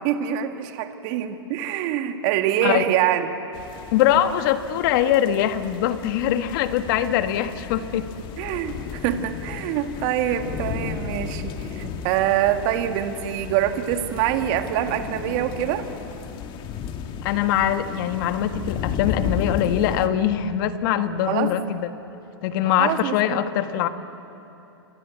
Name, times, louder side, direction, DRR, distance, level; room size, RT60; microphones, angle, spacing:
voice 1, 0.0-3.3 8.4-15.9 21.3-21.5 22.8-23.4, right 11 dB, 45° right, 6 dB, 2.0 m, -25 dB
sound 1, 3.5-20.1, left 7 dB, 35° left, 2.0 m, -34 dB
voice 2, 3.9-8.1 17.2-21.9 22.4-23.9, left 10 dB, 50° left, 10 dB, 1.4 m, -22 dB
26.5 x 26.5 x 8.4 m, 3.0 s
hypercardioid pair, 115°, 14 cm